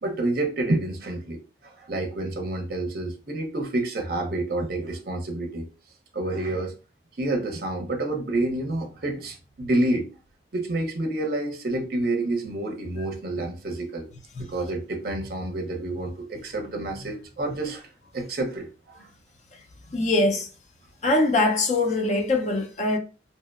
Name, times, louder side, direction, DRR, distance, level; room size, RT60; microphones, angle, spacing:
voice 1, 0.0-1.4 1.8-5.7 6.1-6.7 7.2-10.1 10.5-14.1 14.4-17.9 18.1-19.1, right 2 dB, 50° right, 0.6 m, -28 dB
voice 2, 19.9-20.5 21.0-23.0, left 2 dB, 40° left, 0.4 m, -22 dB
2.8 x 2.0 x 2.3 m
head